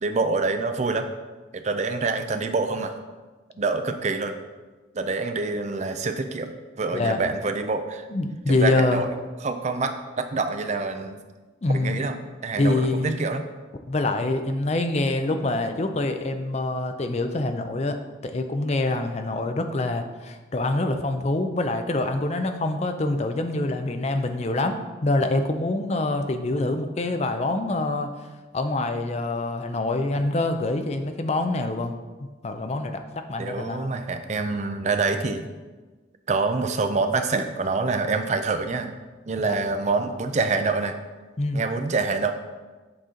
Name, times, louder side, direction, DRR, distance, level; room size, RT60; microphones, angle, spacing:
voice 1, 0.0-1.1 1.5-2.9 3.6-4.3 5.0-8.1 8.5-9.1 9.4-11.2 11.7-12.1 12.4-13.4 33.4-35.4 36.3-38.9 39.3-40.9 41.5-42.3, right 3 dB, 35° right, 7 dB, 0.4 m, -26 dB
voice 2, 8.1-9.0 11.6-12.0 12.5-13.2 13.9-18.0 18.2-28.1 28.5-31.9 32.4-33.0 33.3-33.9 39.4-39.5 41.4-41.7, left 2 dB, 35° left, 7 dB, 0.5 m, -25 dB
7.7 x 4.2 x 3.8 m, 1.3 s
head